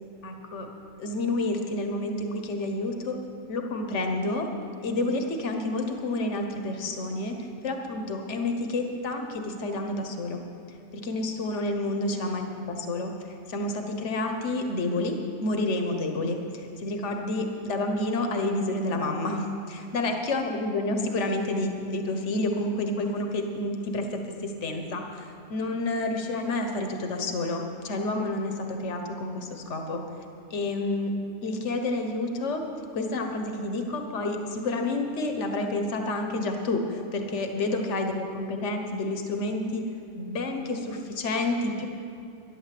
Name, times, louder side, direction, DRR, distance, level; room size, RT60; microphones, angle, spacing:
voice 1, 0.2-0.7 1.0-3.2 3.5-4.5 4.8-7.3 7.6-10.4 10.9-12.4 12.7-30.0 30.5-31.1 31.4-32.6 32.9-39.8 40.2-41.9, left 2 dB, 80° left, 4 dB, 1.4 m, -29 dB
12.0 x 11.0 x 7.6 m, 2.7 s
omnidirectional pair, 1.2 m